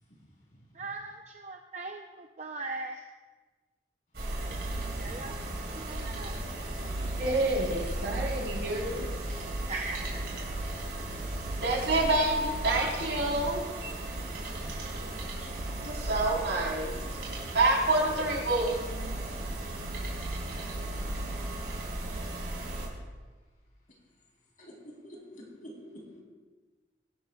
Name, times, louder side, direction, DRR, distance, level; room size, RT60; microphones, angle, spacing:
voice 1, 0.7-3.1 4.8-5.3 5.7-6.4 6.7-7.0 9.7-10.3 15.0-15.6, right 3 dB, 40° right, 3 dB, 0.6 m, -40 dB
sound 1, 4.1-22.9, right 1 dB, 65° right, 3.8 m, -36 dB
voice 2, 7.0-9.1 11.6-13.9 15.8-16.9 17.5-18.8, right 2 dB, 80° right, -2 dB, 3.9 m, -28 dB
voice 3, 24.6-26.2, equal, 50° left, -2 dB, 3.7 m, -48 dB
22.0 x 12.5 x 2.4 m, 1.3 s
head